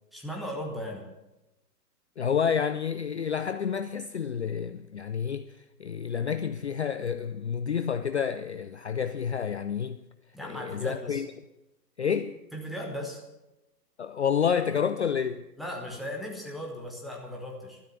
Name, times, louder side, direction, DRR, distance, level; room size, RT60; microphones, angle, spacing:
voice 1, 0.1-1.0 10.3-11.2 12.5-13.2 15.6-17.8, equal, ahead, 1.4 m, -37 dB
voice 2, 2.2-10.0 10.4-11.3 12.0-12.4 14.0-15.4, left 7 dB, 45° left, 0.5 m, -29 dB
12.5 x 11.5 x 7.1 m
figure-of-eight pair, 125°, 49 cm